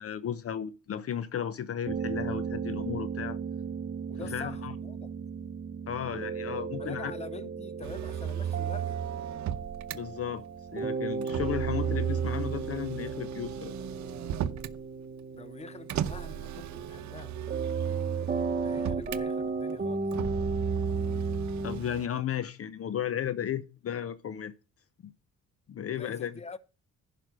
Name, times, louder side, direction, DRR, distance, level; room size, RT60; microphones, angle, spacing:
voice 1, 0.0-3.4 4.2-4.7 5.9-7.1 9.9-10.4 10.7-13.7 21.6-24.5 25.0-25.1 25.7-26.4, left 9 dB, 50° left, 0.7 m, -34 dB
sound 1, 1.9-21.8, right 4 dB, 30° right, 1.1 m, -35 dB
voice 2, 4.1-5.1 6.8-9.0 15.3-17.4 18.6-20.1 22.1-22.2 25.9-26.6, left 4 dB, 20° left, 0.9 m, -45 dB
Motor vehicle (road), 7.8-10.0 11.2-14.8 15.9-19.2 20.1-22.1, right 10 dB, 70° right, 0.8 m, -34 dB
11.0 x 5.1 x 6.1 m
cardioid pair, 90°, 30 cm